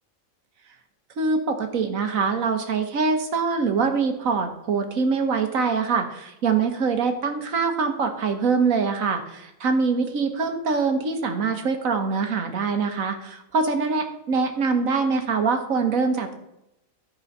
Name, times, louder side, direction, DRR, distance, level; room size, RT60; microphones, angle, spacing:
voice 1, 1.2-16.3, right 4 dB, 80° right, 6 dB, 1.6 m, -24 dB
13.0 x 4.8 x 5.4 m, 0.84 s
omnidirectional pair, 1.4 m